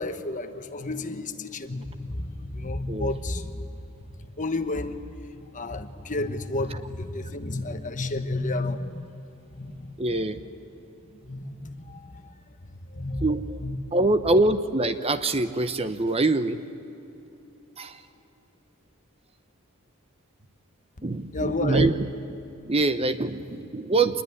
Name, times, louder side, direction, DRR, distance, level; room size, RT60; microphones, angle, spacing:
voice 1, 0.0-3.7 4.1-9.1 9.5-10.0 11.0-13.2 13.6-13.8 21.0-21.9, left 2 dB, 35° left, 8 dB, 1.2 m, -32 dB
voice 2, 10.0-10.4 13.2-13.6 13.9-16.6 17.8-18.0 21.0-22.1 22.6-24.2, right 2 dB, 30° right, 11 dB, 0.9 m, -24 dB
26.0 x 20.5 x 9.8 m, 3.0 s
head